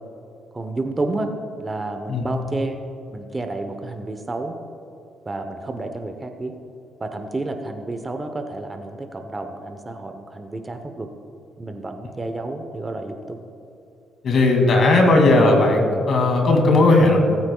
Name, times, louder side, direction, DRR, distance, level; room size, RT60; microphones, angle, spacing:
voice 1, 0.5-1.3 1.6-2.8 3.1-4.6 5.3-6.5 7.0-11.1 11.6-13.4, right 2 dB, 25° right, 6 dB, 0.8 m, -30 dB
voice 2, 14.2-17.2, left 2 dB, 55° left, 2 dB, 2.2 m, -16 dB
19.0 x 8.7 x 2.3 m, 2.6 s
cardioid pair, 90°, 0 cm